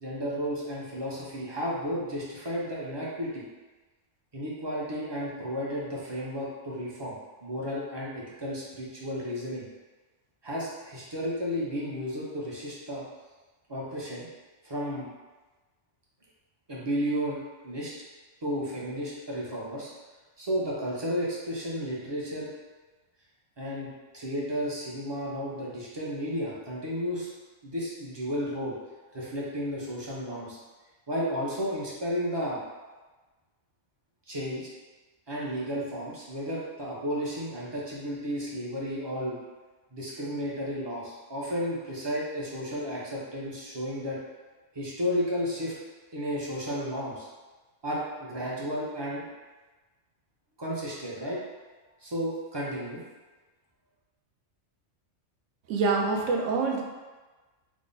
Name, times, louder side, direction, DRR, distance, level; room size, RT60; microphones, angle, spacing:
voice 1, 0.0-3.4 4.3-7.2 7.4-9.7 10.4-13.0 13.7-14.3 14.6-15.1 16.7-17.9 18.4-19.9 20.4-22.5 23.6-27.3 27.6-28.7 29.1-30.6 31.1-32.6 34.3-34.7 35.3-39.4 39.9-44.2 44.7-45.7 46.1-47.3 47.8-49.3 50.6-51.4 52.0-53.0, equal, 35° right, -6 dB, 0.4 m, -33 dB
voice 2, 55.7-56.8, right 4 dB, 80° right, 1 dB, 0.9 m, -25 dB
3.5 x 2.0 x 3.9 m, 1.2 s
omnidirectional pair, 1.3 m